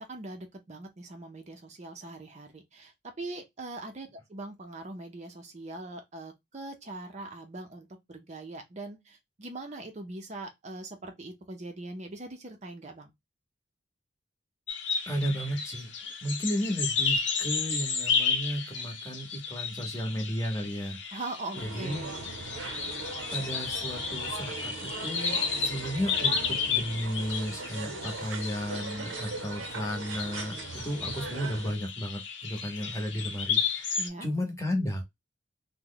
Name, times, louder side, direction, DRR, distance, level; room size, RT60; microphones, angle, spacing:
voice 1, 0.1-13.1 21.1-22.3 34.0-34.3, right 2 dB, 35° right, 0.5 m, -41 dB
sound 1, 14.7-34.1, left 5 dB, 65° left, 0.8 m, -33 dB
voice 2, 15.1-15.9 16.2-21.0 21.5-22.1 23.3-35.0, equal, 15° left, 0.8 m, -33 dB
sound 2, 21.5-31.7, right 4 dB, 80° right, 0.6 m, -39 dB
3.0 x 2.1 x 3.7 m
head